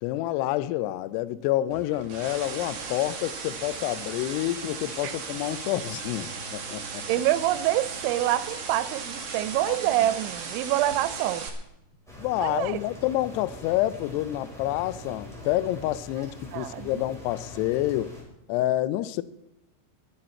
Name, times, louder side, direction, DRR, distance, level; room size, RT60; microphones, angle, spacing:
voice 1, 0.0-7.0 9.7-9.8 12.2-18.1 18.5-19.2, left 15 dB, 80° left, 2.5 m, -28 dB
sound 1, 1.7-11.5, right 5 dB, 50° right, 2.0 m, -37 dB
sound 2, 6.1-12.4, right 1 dB, 25° right, 2.0 m, -53 dB
voice 2, 7.1-11.5 12.4-12.8 16.5-17.0, right 14 dB, 85° right, 3.1 m, -26 dB
sound 3, 12.1-18.2, left 1 dB, ahead, 4.7 m, -43 dB
23.5 x 8.9 x 4.4 m
omnidirectional pair, 5.2 m